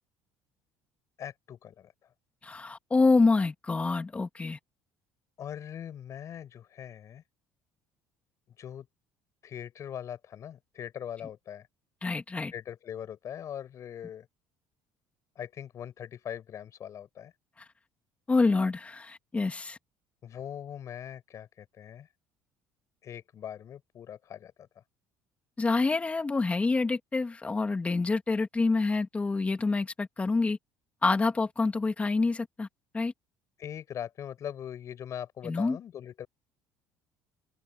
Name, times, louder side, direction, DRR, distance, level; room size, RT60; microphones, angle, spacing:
voice 1, 1.2-1.9 5.4-7.2 8.6-8.9 9.4-11.7 12.5-14.3 15.4-17.3 20.2-22.1 23.0-24.7 33.6-36.3, left 9 dB, 50° left, 7.1 m, -41 dB
voice 2, 2.4-4.6 12.0-12.5 18.3-19.8 25.6-30.6 31.0-32.7 32.9-33.1 35.4-35.8, left 3 dB, 20° left, 3.0 m, -27 dB
open air
cardioid pair, 110°, 7 cm